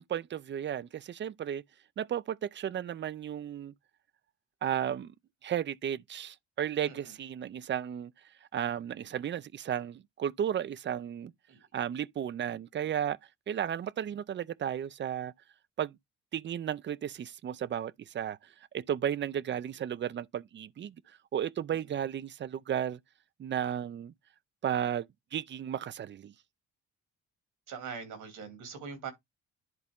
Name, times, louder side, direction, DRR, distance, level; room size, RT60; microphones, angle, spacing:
voice 1, 0.0-1.6 2.0-3.7 4.6-5.1 5.4-8.1 8.5-11.3 11.7-13.2 13.5-15.3 15.8-16.0 16.3-18.4 18.7-21.0 21.3-23.0 23.4-24.1 24.6-26.3, right 9 dB, 40° right, 0.5 m, -34 dB
voice 2, 6.8-7.1 11.5-11.6 27.7-29.1, right 6 dB, 80° right, 2.8 m, -42 dB
11.0 x 4.1 x 3.6 m
cardioid pair, 90°, 30 cm